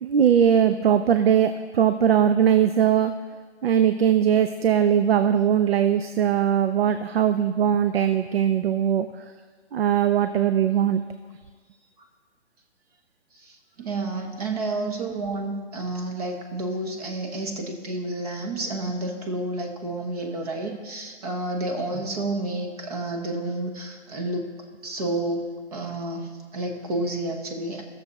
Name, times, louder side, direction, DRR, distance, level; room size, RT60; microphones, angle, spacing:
voice 1, 0.0-3.1 3.6-9.1 9.7-11.0, right 9 dB, 55° right, 9 dB, 0.5 m, -20 dB
voice 2, 13.3-24.5 24.8-27.8, right 2 dB, 30° right, 3 dB, 1.3 m, -30 dB
15.0 x 6.9 x 4.1 m, 1.5 s
hypercardioid pair, 160°, 36 cm